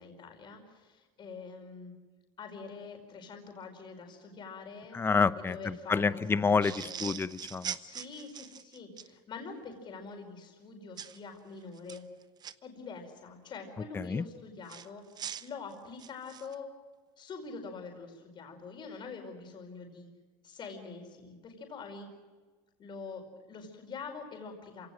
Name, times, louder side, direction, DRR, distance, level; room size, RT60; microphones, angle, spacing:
voice 1, 0.0-1.9 2.4-5.0 5.3-7.0 7.7-12.0 12.6-15.0 15.4-16.7 17.2-20.1 20.4-22.1 22.8-24.9, left 4 dB, 35° left, 3 dB, 5.0 m, -45 dB
voice 2, 4.9-7.8 13.9-14.2, left 5 dB, 15° left, 14 dB, 0.7 m, -28 dB
sound 1, 6.6-9.1 11.0-11.2 11.7-12.5 14.7-16.5, right 8 dB, 30° right, 0.8 m, -41 dB
27.5 x 17.5 x 7.8 m, 1.4 s
supercardioid pair, 135°, 14 cm